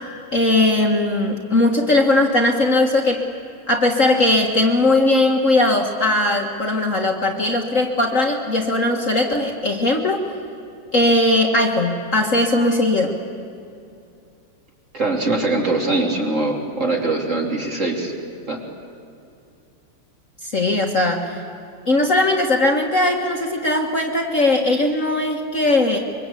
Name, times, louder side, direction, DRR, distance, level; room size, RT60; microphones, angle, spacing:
voice 1, 0.3-3.2 3.7-10.2 10.9-13.2 20.4-21.4 21.9-26.0, left 2 dB, 40° left, 2 dB, 1.8 m, -19 dB
voice 2, 14.9-18.1 18.5-18.6, right 2 dB, 35° right, 0 dB, 3.2 m, -22 dB
25.0 x 23.5 x 8.4 m, 2.6 s
omnidirectional pair, 2.4 m